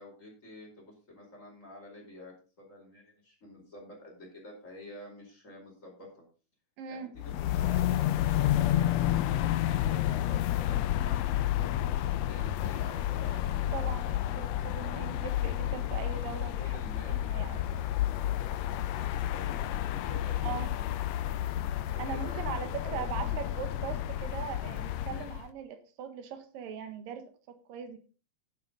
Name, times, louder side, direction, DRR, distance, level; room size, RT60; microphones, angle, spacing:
voice 1, 0.0-6.1 6.9-13.3 14.8-14.9 16.6-20.6 21.2-21.4 21.9-23.6 25.0-25.3, left 1 dB, 20° left, -1 dB, 4.8 m, -49 dB
voice 2, 6.8-7.1 13.3-17.6 20.4-20.7 22.0-28.0, right 8 dB, 90° right, 8 dB, 3.1 m, -40 dB
sound 1, 7.2-25.5, left 12 dB, 85° left, 1.5 m, -30 dB
10.5 x 10.5 x 4.0 m, 0.36 s
omnidirectional pair, 3.8 m